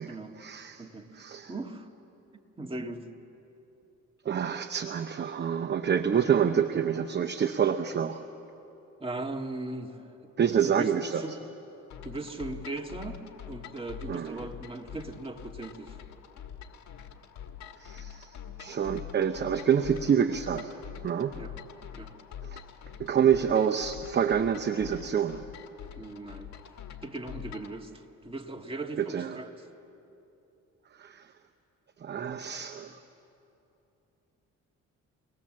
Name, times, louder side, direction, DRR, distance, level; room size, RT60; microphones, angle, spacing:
voice 1, 0.0-0.8 1.2-1.5 4.2-8.2 10.4-11.2 14.1-14.5 17.8-18.3 18.6-20.7 21.0-21.3 22.4-22.6 23.0-25.4 29.0-29.3 31.0-31.3 32.0-33.0, right 8 dB, 35° right, 8 dB, 0.8 m, -27 dB
voice 2, 1.5-1.9 2.6-3.1 9.0-10.0 10.6-11.4 12.0-13.2 13.5-16.0 21.4-21.6 22.0-22.1 26.0-26.5 27.0-29.7, right 2 dB, 20° right, 3 dB, 1.7 m, -38 dB
sound 1, 11.9-27.8, left 8 dB, 65° left, 1.7 m, -45 dB
24.5 x 19.5 x 7.5 m, 2.9 s
cardioid pair, 90°, 30 cm